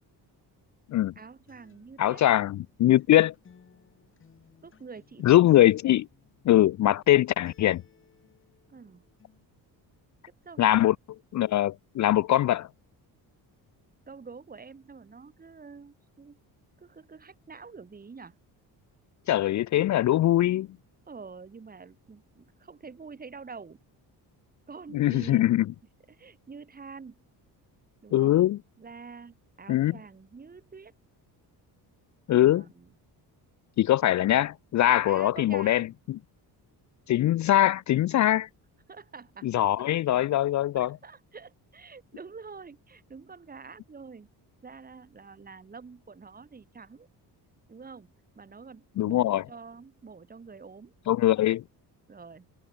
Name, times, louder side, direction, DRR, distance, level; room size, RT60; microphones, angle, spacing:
voice 1, 1.1-2.2 4.6-5.4 8.7-9.1 10.4-10.7 14.1-16.4 16.8-18.3 21.0-23.8 24.7-25.5 26.1-27.2 28.0-28.4 28.8-30.9 32.3-32.9 35.1-35.8 38.9-39.5 40.7-44.3 44.6-47.1 47.7-50.9 52.1-52.5, right 5 dB, 20° right, 4.5 m, -46 dB
Acoustic guitar, 1.5-9.5, left 6 dB, 30° left, 6.0 m, -61 dB
voice 2, 2.0-3.3 5.2-6.1 6.5-7.8 10.6-10.9 11.3-12.7 19.3-20.7 24.9-25.6 28.1-28.6 29.7-29.9 32.3-32.6 33.8-35.9 37.1-38.5 39.4-40.9 49.0-49.4 51.1-51.6, left 13 dB, 45° left, 0.6 m, -22 dB
cardioid pair, 160°, 39 cm